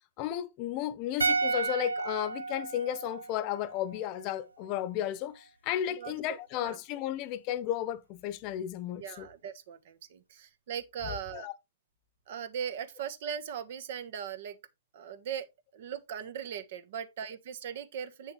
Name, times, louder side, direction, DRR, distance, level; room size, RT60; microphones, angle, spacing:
voice 1, 0.2-9.3 11.0-11.5, left 11 dB, 40° left, 0.9 m, -34 dB
sound 1, 1.2-4.4 4.7-4.8, right 4 dB, 90° right, 0.6 m, -33 dB
voice 2, 5.8-6.8 9.0-11.5 12.3-14.6 14.9-15.5 15.7-18.3, right 8 dB, 60° right, 1.3 m, -39 dB
8.5 x 6.3 x 3.3 m
hypercardioid pair, 120°, 0 cm